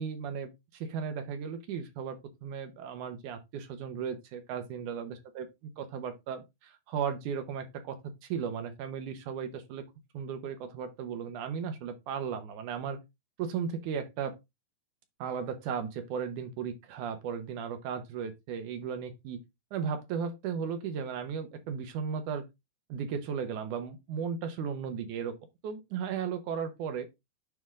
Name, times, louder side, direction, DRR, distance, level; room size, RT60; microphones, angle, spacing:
voice 1, 0.0-9.8 10.1-13.0 13.4-14.3 15.2-19.4 19.7-22.4 22.9-25.3 25.6-27.1, right 7 dB, 70° right, 2.0 m, -36 dB
9.5 x 3.5 x 3.6 m
omnidirectional pair, 4.3 m